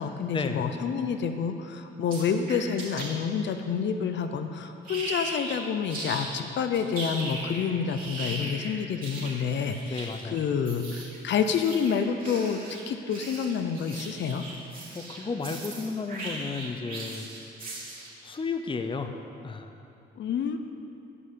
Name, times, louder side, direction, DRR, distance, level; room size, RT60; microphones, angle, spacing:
voice 1, 0.0-12.6 12.9-14.4 20.2-20.6, left 6 dB, 65° left, 8 dB, 0.7 m, -28 dB
sound 1, 2.1-3.0 4.8-5.6 5.9-6.3 6.7-18.2, right 2 dB, 45° right, 3.0 m, -38 dB
voice 2, 9.8-10.4 14.9-17.3 18.2-19.1 19.4-19.7, left 4 dB, 25° left, 7 dB, 0.7 m, -33 dB
11.0 x 5.5 x 8.6 m, 2.8 s
cardioid pair, 90°, 20 cm